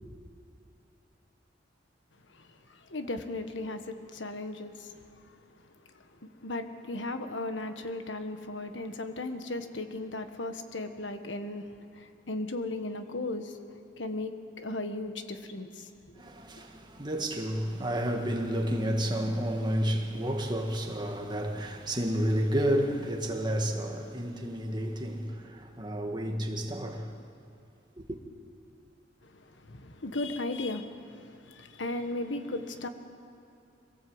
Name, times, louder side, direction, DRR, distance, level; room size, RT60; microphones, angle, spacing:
voice 1, 2.3-5.4 5.9-15.9 29.2-32.9, left 2 dB, 85° left, 1.5 m, -37 dB
voice 2, 16.2-27.1 28.0-28.2, equal, 25° right, 1.9 m, -31 dB
23.5 x 17.0 x 8.0 m
head